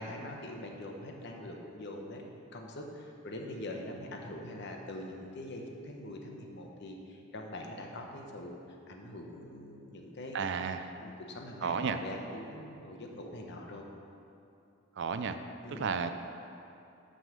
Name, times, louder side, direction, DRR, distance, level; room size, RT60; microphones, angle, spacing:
voice 1, 0.0-2.2 2.5-10.6 11.0-13.9 15.6-15.9, left 1 dB, 60° left, 2 dB, 0.9 m, -43 dB
voice 2, 10.3-10.9 11.6-12.0 15.0-15.4 15.7-16.1, right 5 dB, 60° right, 9 dB, 0.4 m, -32 dB
6.2 x 5.5 x 6.5 m, 2.7 s
head